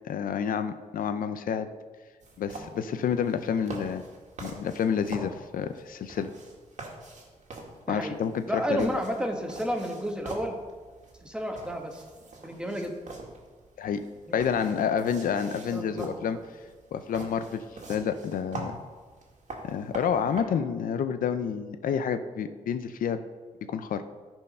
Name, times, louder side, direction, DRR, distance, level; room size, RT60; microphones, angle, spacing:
voice 1, 0.0-1.7 2.4-4.0 4.4-6.3 7.9-8.9 13.8-14.0 14.3-16.4 16.9-18.8 19.6-23.2 23.7-24.0, left 7 dB, 85° left, 10 dB, 0.5 m, -29 dB
sound 1, 2.2-20.4, right 2 dB, 60° right, 1.9 m, -44 dB
voice 2, 8.5-10.6 11.2-12.0 12.4-12.9 14.3-14.4 15.7-16.2, equal, 5° right, 3 dB, 1.3 m, -31 dB
13.0 x 4.5 x 5.4 m, 1.4 s
cardioid pair, 100°, 14 cm